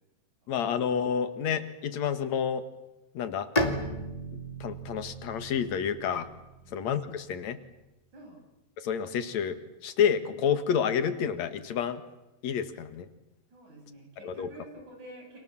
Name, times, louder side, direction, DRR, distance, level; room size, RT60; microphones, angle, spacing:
voice 1, 0.5-2.7 3.1-3.5 4.3-6.3 6.7-7.6 8.8-12.0 12.4-13.1 14.2-14.5, left 7 dB, 70° left, 10 dB, 2.9 m, -29 dB
Bowed string instrument, 3.6-7.2, equal, 15° left, 2.3 m, -34 dB
voice 2, 13.5-15.4, right 1 dB, 80° right, 2 dB, 9.4 m, -48 dB
30.0 x 27.0 x 7.4 m, 0.97 s
omnidirectional pair, 3.4 m